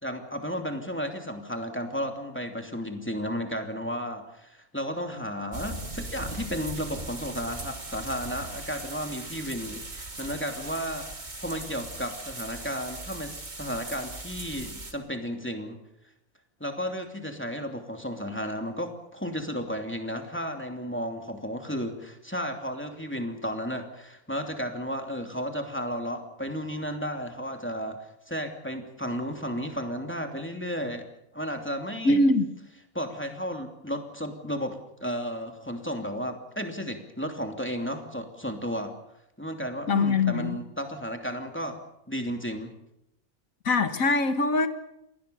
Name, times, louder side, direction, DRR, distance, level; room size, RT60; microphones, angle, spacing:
voice 1, 0.0-11.1 11.4-15.8 16.6-31.1 31.3-32.2 32.9-38.9 39.4-41.8 42.1-42.7, equal, 10° left, 2.7 m, -33 dB
sound 1, 5.5-14.9, right 2 dB, 30° right, 2.3 m, -39 dB
voice 2, 32.0-32.5 39.9-40.6 43.7-44.7, left 3 dB, 70° left, 2.1 m, -22 dB
27.5 x 19.5 x 7.0 m
omnidirectional pair, 1.5 m